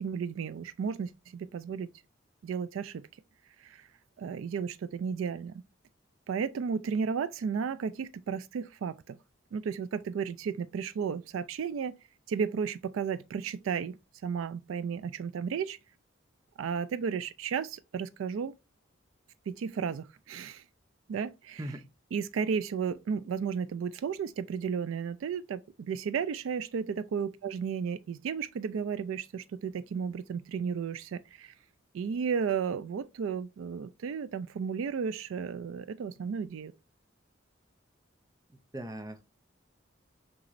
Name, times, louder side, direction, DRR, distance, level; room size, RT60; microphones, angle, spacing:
voice 1, 0.0-1.9 2.4-3.1 3.6-3.9 4.2-5.5 6.3-9.2 9.5-12.0 12.3-15.8 16.6-18.5 19.5-20.6 21.1-21.6 22.1-31.5 31.9-36.7, right 6 dB, 90° right, 0.3 m, -33 dB
voice 2, 38.7-39.2, right 1 dB, 20° right, 0.5 m, -39 dB
6.0 x 2.9 x 2.5 m
head